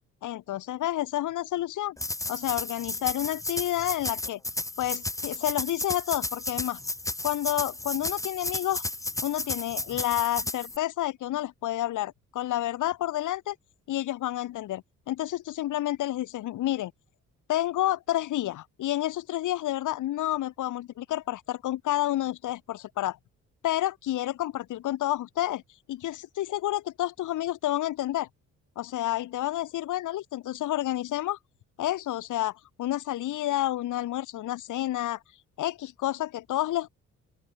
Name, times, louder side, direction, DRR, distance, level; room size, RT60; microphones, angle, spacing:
voice 1, 0.2-2.0 2.3-4.4 4.8-6.8 7.2-8.8 9.2-13.5 13.9-16.9 17.5-23.2 23.6-25.6 25.9-28.3 28.8-31.4 31.8-35.2 35.6-36.9, left 14 dB, 80° left, 2.9 m, -29 dB
sound 1, 2.0-10.8, left 2 dB, 10° left, 1.3 m, -33 dB
open air
cardioid pair, 90°, 30 cm